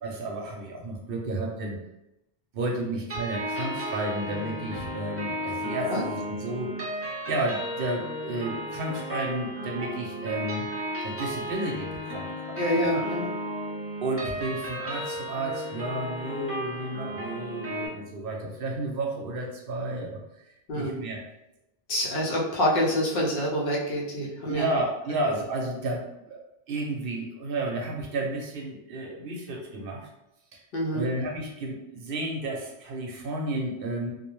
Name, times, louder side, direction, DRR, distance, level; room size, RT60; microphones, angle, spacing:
voice 1, 0.0-1.8 2.5-6.7 7.3-10.7 11.0-13.0 14.0-20.2 20.7-21.2 24.5-26.4 26.7-30.1 30.9-34.1, right 2 dB, 65° right, 0 dB, 0.7 m, -32 dB
sound 1, 3.1-17.9, equal, 20° right, 0.4 m, -34 dB
voice 2, 12.6-13.3 20.7-21.0 21.9-24.7 30.7-31.1, equal, 65° left, -3 dB, 0.8 m, -26 dB
2.4 x 2.1 x 3.0 m, 0.88 s
omnidirectional pair, 1.0 m